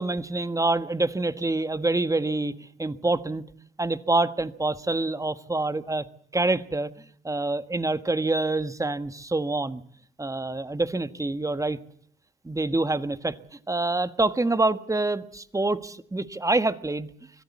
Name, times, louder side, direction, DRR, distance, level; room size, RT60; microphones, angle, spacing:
voice 1, 0.0-3.4 3.8-6.0 6.3-6.9 7.2-9.8 10.2-11.8 12.4-13.4 13.7-17.1, right 2 dB, 15° right, 12 dB, 1.5 m, -26 dB
25.5 x 16.0 x 8.5 m, 0.63 s
hypercardioid pair, 50°, 18 cm